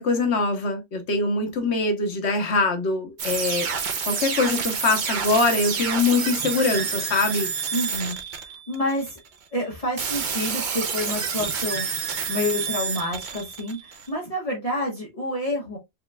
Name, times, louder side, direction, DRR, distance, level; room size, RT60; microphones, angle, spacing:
voice 1, 0.0-3.7 4.0-7.5, left 3 dB, 80° left, 1.3 m, -23 dB
sound 1, 3.2-9.3 10.0-14.1, right 6 dB, 50° right, 0.7 m, -29 dB
voice 2, 7.7-9.2 9.5-15.8, left 1 dB, 35° left, 1.2 m, -29 dB
4.9 x 3.1 x 2.3 m
omnidirectional pair, 1.1 m